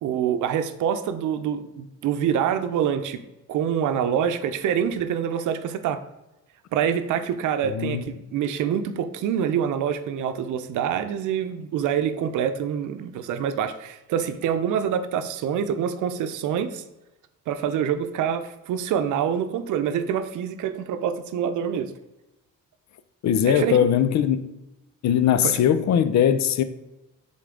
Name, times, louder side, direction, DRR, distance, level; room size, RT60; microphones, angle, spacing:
voice 1, 0.0-3.2 3.5-6.0 6.7-16.8 17.5-21.9 23.4-23.8 25.4-25.6, right 8 dB, 80° right, 0.6 m, -26 dB
voice 2, 7.6-8.0 23.2-24.6 25.0-26.6, left 9 dB, 65° left, 0.6 m, -20 dB
7.5 x 3.8 x 3.8 m
cardioid pair, 90°, 30 cm